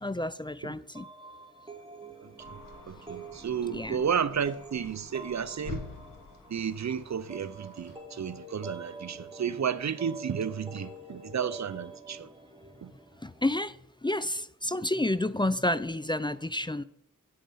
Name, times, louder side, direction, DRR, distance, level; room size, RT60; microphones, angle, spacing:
voice 1, 0.0-1.1 3.7-4.0 13.2-13.8 14.0-16.8, left 1 dB, 15° left, 0.4 m, -30 dB
sound 1, 0.9-13.5, right 3 dB, 15° right, 1.5 m, -47 dB
voice 2, 2.2-2.6 2.9-5.9 6.5-12.3 12.8-12.9, right 7 dB, 60° right, 0.6 m, -32 dB
sound 2, 2.4-8.0, left 5 dB, 90° left, 1.2 m, -47 dB
8.6 x 8.6 x 5.6 m
cardioid pair, 60°, 32 cm